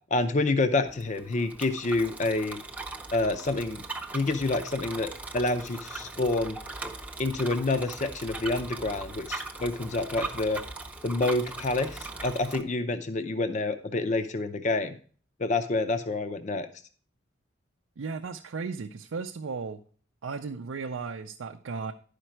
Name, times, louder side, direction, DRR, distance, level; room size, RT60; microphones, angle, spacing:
voice 1, 0.1-2.6 3.1-3.8 4.1-6.6 7.2-10.6 11.0-14.9 15.4-16.7, left 2 dB, 35° left, 10 dB, 0.5 m, -28 dB
Bicycle, 0.9-12.6, right 3 dB, 5° right, 0.6 m, -40 dB
voice 2, 18.0-19.8 20.2-21.9, right 4 dB, 75° right, 4 dB, 0.5 m, -35 dB
11.0 x 5.2 x 4.4 m, 0.43 s
head